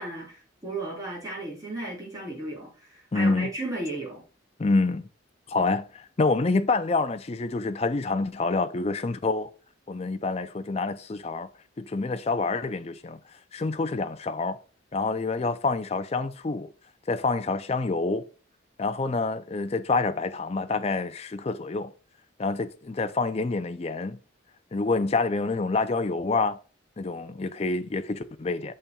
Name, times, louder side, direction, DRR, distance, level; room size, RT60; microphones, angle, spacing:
voice 1, 0.0-4.2, right 2 dB, 15° right, 3.6 m, -35 dB
voice 2, 3.1-3.5 4.6-5.1 5.5-9.5 9.9-11.5 11.8-13.2 13.5-14.6 14.9-16.7 17.1-18.2 18.8-21.9 22.4-24.2 24.7-26.6 27.0-28.7, left 3 dB, 30° left, 0.4 m, -27 dB
8.5 x 6.9 x 2.3 m
head